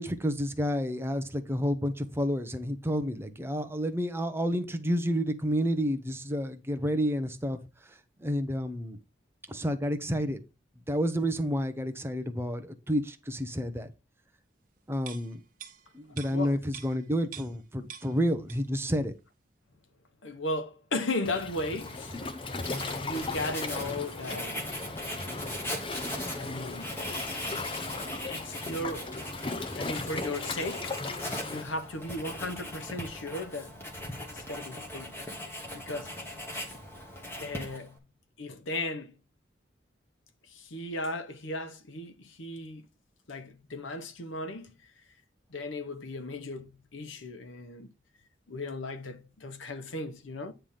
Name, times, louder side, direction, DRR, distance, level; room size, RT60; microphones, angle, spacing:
voice 1, 0.0-7.6 8.2-9.0 9.5-10.4 10.9-13.9 14.9-15.4 15.9-19.1, equal, 10° right, 0.7 m, -30 dB
sound 1, 15.0-17.6 17.9-18.9 19.2-19.3, right 8 dB, 45° right, 1.1 m, -47 dB
voice 2, 20.2-22.2 22.9-24.7 26.4-26.9 28.3-29.2 29.7-30.9 31.4-33.8 34.2-35.2 35.7-36.1 37.4-38.0 38.4-39.2 40.5-42.9 43.3-44.7 45.5-47.9 48.5-50.5, left 2 dB, 85° left, 1.0 m, -36 dB
Waves surf, 21.2-31.6, left 3 dB, 25° left, 0.6 m, -37 dB
Writing, 21.8-38.0, left 1 dB, 10° left, 1.6 m, -39 dB
8.9 x 3.4 x 5.7 m
head